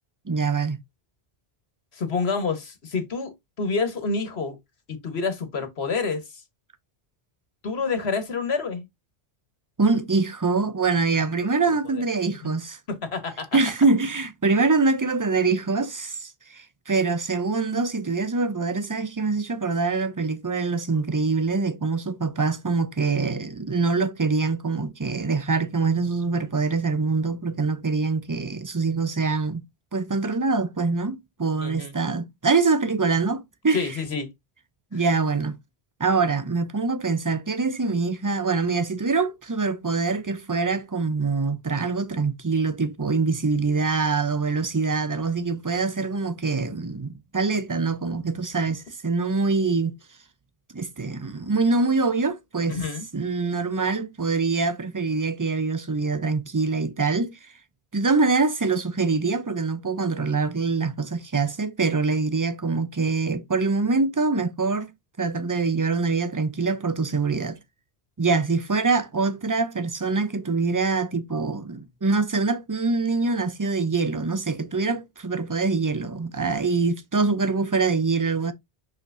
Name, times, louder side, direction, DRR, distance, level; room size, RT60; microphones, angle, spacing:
voice 1, 0.3-0.8 9.8-12.8 13.5-29.6 29.9-33.9 34.9-35.6 36.0-49.9 50.7-52.8 53.1-57.4 57.9-64.9 65.2-67.6 68.2-78.5, right 4 dB, 25° right, 0.6 m, -24 dB
voice 2, 1.9-4.6 4.9-6.3 7.6-8.8 11.9-12.0 12.4-12.5 12.9-13.5 31.6-31.9 33.7-34.3 52.7-53.0, left 4 dB, 75° left, 1.6 m, -28 dB
6.4 x 5.7 x 2.6 m
omnidirectional pair, 1.1 m